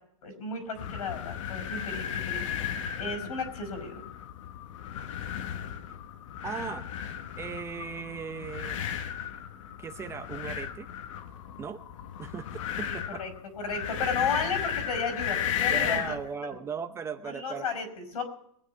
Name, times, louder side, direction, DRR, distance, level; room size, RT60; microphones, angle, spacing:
voice 1, 0.2-2.4 3.0-4.0 13.2-13.3 13.6-16.1 17.3-18.2, left 4 dB, 85° left, 7 dB, 5.3 m, -33 dB
sound 1, 0.8-16.3, left 9 dB, 60° left, 1.5 m, -35 dB
voice 2, 6.4-6.9 7.4-8.8 9.8-10.9 11.6-11.8 12.2-13.2 15.7-17.7, right 6 dB, 15° right, 9 dB, 0.8 m, -37 dB
22.0 x 9.4 x 5.7 m, 0.71 s
supercardioid pair, 150°, 18 cm